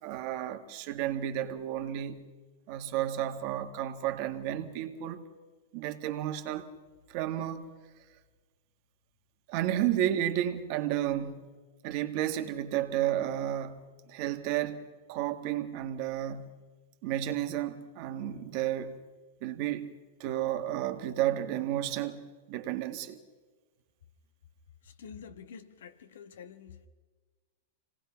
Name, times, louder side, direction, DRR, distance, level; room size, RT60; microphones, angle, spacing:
voice 1, 0.0-2.3 2.7-5.2 5.7-6.7 7.1-7.7 9.5-11.5 11.8-16.6 17.0-19.0 19.4-19.9 20.2-23.2, right 12 dB, 50° right, 1.9 m, -32 dB
voice 2, 24.8-26.9, left 7 dB, 75° left, 1.7 m, -48 dB
26.5 x 18.5 x 5.9 m
hypercardioid pair, 120°, 0 cm